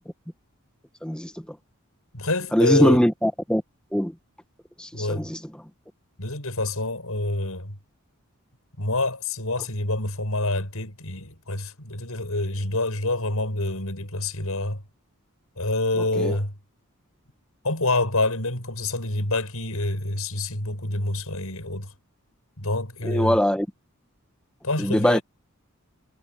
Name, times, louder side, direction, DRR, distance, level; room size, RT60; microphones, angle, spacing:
voice 1, 1.0-1.3 2.5-3.6 3.9-4.1 4.8-5.4 16.2-16.3 23.0-23.7 24.8-25.2, equal, 5° left, 1.3 m, -21 dB
voice 2, 2.1-3.0 4.9-5.3 6.2-7.8 8.8-14.8 15.6-16.6 17.6-21.9 22.6-23.4 24.6-25.2, left 2 dB, 75° left, 7.2 m, -27 dB
head